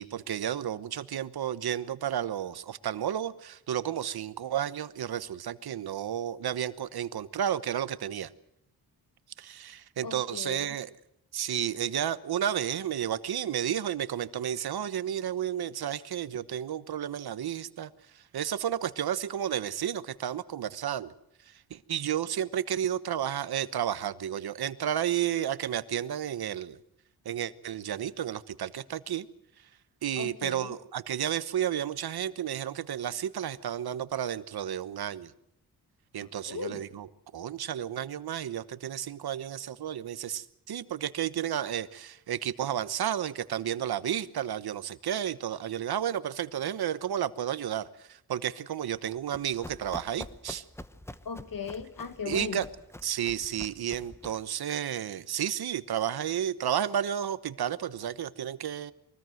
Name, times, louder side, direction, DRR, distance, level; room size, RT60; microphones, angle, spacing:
voice 1, 0.0-8.3 9.4-10.9 11.3-17.9 18.3-21.1 21.7-26.8 27.2-29.3 30.0-35.3 36.1-37.1 37.3-50.6 52.3-52.7 53.0-58.9, right 10 dB, 75° right, 1.1 m, -32 dB
voice 2, 10.0-10.8 30.2-30.8 36.2-36.8 51.3-52.6, left 6 dB, 60° left, 1.9 m, -38 dB
Run, 48.9-54.5, left 1 dB, 5° left, 1.0 m, -46 dB
23.5 x 19.0 x 7.9 m
cardioid pair, 105°, 38 cm